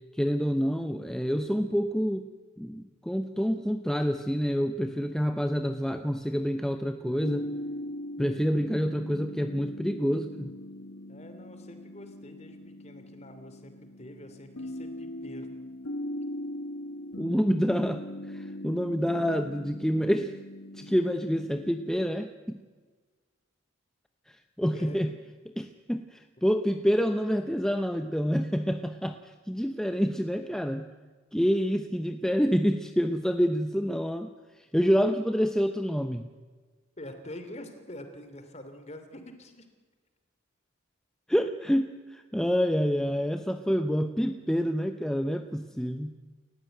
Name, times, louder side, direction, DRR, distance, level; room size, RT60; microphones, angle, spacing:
voice 1, 0.1-2.3 2.6-7.5 8.2-10.5 17.2-20.4 20.7-22.6 24.3-25.1 25.6-30.9 31.3-36.2 41.3-46.2, equal, 5° left, 7 dB, 0.7 m, -27 dB
sound 1, 7.0-22.1, left 1 dB, 85° left, 1.4 m, -40 dB
voice 2, 11.1-15.5 24.7-25.1 37.0-39.7, left 1 dB, 30° left, 8 dB, 2.9 m, -45 dB
29.5 x 15.0 x 9.1 m, 1.4 s
head